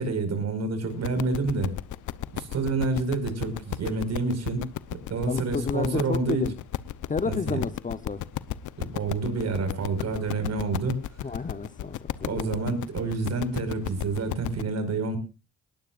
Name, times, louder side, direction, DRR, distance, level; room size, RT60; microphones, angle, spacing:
voice 1, 0.0-1.7 2.3-4.7 5.1-6.4 7.3-7.6 8.8-11.0 12.2-15.2, right 3 dB, 60° right, 5.3 m, -28 dB
sound 1, 0.9-14.6, left 13 dB, 80° left, 0.9 m, -34 dB
voice 2, 5.3-6.5 7.1-8.2 11.2-12.5, left 4 dB, 25° left, 0.9 m, -31 dB
20.0 x 18.5 x 2.5 m
cardioid pair, 90°, 30 cm